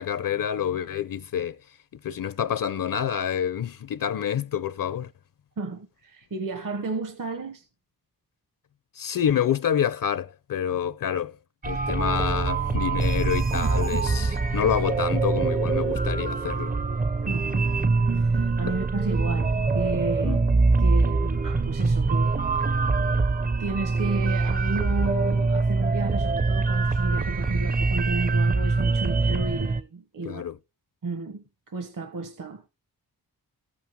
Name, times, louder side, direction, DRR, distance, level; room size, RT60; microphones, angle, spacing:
voice 1, 0.0-1.6 2.0-5.1 8.9-11.4 11.7-16.7 18.7-18.8 20.2-20.4 30.2-30.6, left 9 dB, 60° left, 0.6 m, -27 dB
voice 2, 5.6-7.7 17.3-17.6 18.1-20.4 20.8-23.3 23.6-30.4 31.0-32.7, right 3 dB, 60° right, 1.2 m, -33 dB
sound 1, 11.6-29.8, right 3 dB, 25° right, 0.6 m, -24 dB
14.5 x 8.5 x 3.6 m
wide cardioid pair, 160°, 37 cm